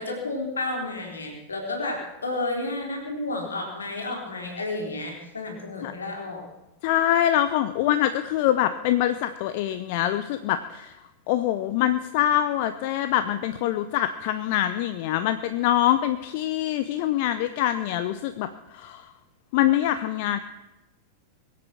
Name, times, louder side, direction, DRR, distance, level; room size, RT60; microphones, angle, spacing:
voice 1, 0.0-6.4, left 2 dB, 75° left, 1 dB, 3.9 m, -31 dB
voice 2, 6.8-10.9 11.3-18.5 18.7-19.0 19.5-20.4, left 12 dB, 50° left, 11 dB, 0.7 m, -24 dB
22.5 x 8.5 x 6.1 m, 1.0 s
figure-of-eight pair, 90°, 0 cm